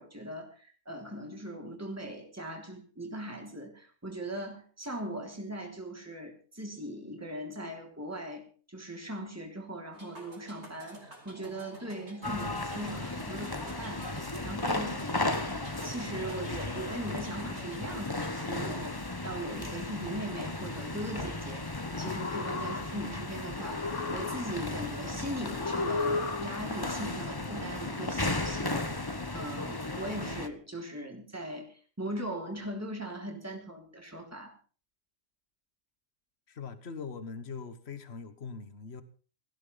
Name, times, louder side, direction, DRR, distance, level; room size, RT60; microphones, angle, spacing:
voice 1, 0.0-8.4 8.7-28.8 29.3-34.5, right 1 dB, 10° right, 3.5 m, -40 dB
sound 1, 9.9-18.9, right 1 dB, 65° right, 4.6 m, -50 dB
sound 2, 12.2-30.5, left 2 dB, 20° left, 1.3 m, -35 dB
sound 3, 21.8-23.2 23.6-24.8 25.5-26.8, left 3 dB, 90° left, 1.9 m, -35 dB
voice 2, 36.5-39.0, left 5 dB, 60° left, 1.7 m, -41 dB
18.5 x 15.0 x 4.1 m
omnidirectional pair, 1.2 m